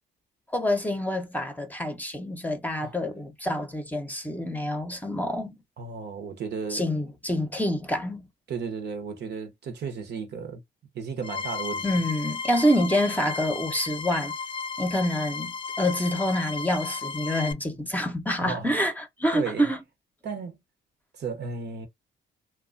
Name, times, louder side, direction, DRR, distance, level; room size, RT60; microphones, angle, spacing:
voice 1, 0.5-5.6 6.7-8.3 11.8-14.3 14.8-19.8, equal, 10° left, 0.8 m, -27 dB
voice 2, 5.8-6.8 8.5-10.6 10.9-11.8 18.4-18.7 19.3-19.7 20.2-20.6 21.2-21.9, right 5 dB, 60° right, 0.9 m, -34 dB
sound 1, 11.2-17.5, left 5 dB, 25° left, 0.3 m, -34 dB
2.9 x 2.3 x 2.5 m
cardioid pair, 90°, 20 cm